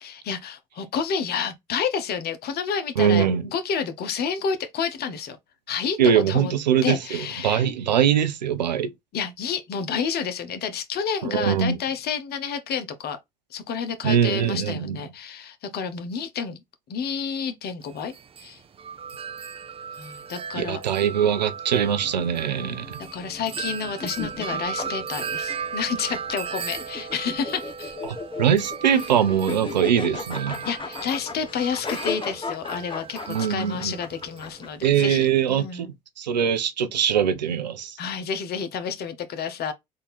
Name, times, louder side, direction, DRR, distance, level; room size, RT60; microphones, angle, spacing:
voice 1, 0.0-5.4 5.7-6.5 6.8-7.7 9.1-13.2 13.5-16.6 16.9-18.1 18.4-18.6 20.0-20.8 22.5-22.8 23.1-28.0 28.9-29.0 30.6-35.9 38.0-39.7, left 6 dB, 50° left, 1.0 m, -30 dB
voice 2, 3.0-3.5 6.0-8.9 11.2-11.8 14.0-15.0 20.6-23.0 28.0-30.6 33.3-34.0 34.8-35.9 36.2-38.0, right 8 dB, 90° right, 0.5 m, -22 dB
Wind chime, 17.8-34.7, right 6 dB, 25° right, 0.6 m, -36 dB
sound 1, 21.7-35.3, left 3 dB, 25° left, 0.9 m, -37 dB
3.7 x 2.7 x 4.0 m
hypercardioid pair, 60°, 21 cm